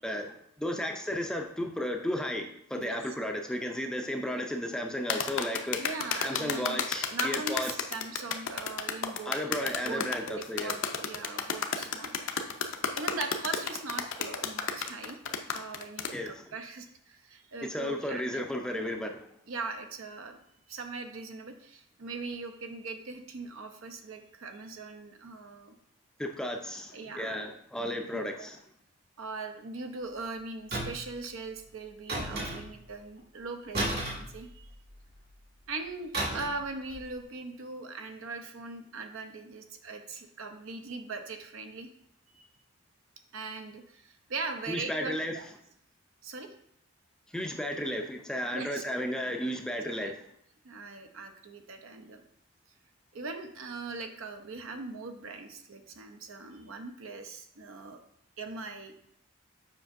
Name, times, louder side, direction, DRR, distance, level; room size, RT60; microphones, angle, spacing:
voice 1, 0.0-5.9 6.2-7.7 9.3-10.8 16.1-16.3 17.6-19.2 26.2-28.6 44.7-45.4 47.3-50.2, equal, 5° left, 3 dB, 0.4 m, -34 dB
voice 2, 3.3-3.7 5.8-6.8 7.1-12.3 12.9-15.2 15.5-18.4 19.5-20.4 20.7-25.7 26.9-27.5 27.8-28.0 29.2-34.8 35.7-41.9 42.3-42.5 43.3-45.5 46.2-46.5 48.5-48.8 49.8-50.1 50.6-52.2 53.1-58.0 58.4-59.1, right 3 dB, 75° right, 6 dB, 0.7 m, -40 dB
sound 1, 5.1-16.1, left 6 dB, 60° left, 0.5 m, -32 dB
sound 2, 30.7-31.2 32.1-32.9 33.7-34.9 36.1-36.7 36.9-37.1, right 1 dB, 45° right, 1.9 m, -33 dB
7.4 x 5.3 x 2.5 m, 0.72 s
head